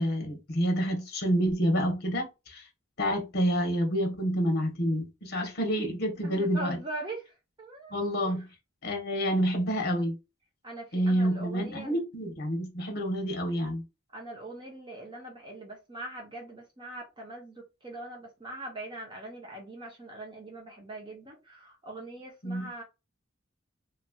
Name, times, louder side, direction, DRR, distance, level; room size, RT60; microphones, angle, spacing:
voice 1, 0.0-2.6 3.0-6.8 7.9-8.5 8.8-10.2 10.9-13.8 22.4-22.7, equal, 55° left, 1.1 m, -28 dB
voice 2, 6.2-8.4 10.6-12.0 14.1-22.8, right 2 dB, 25° right, 0.9 m, -42 dB
3.2 x 3.0 x 2.3 m
head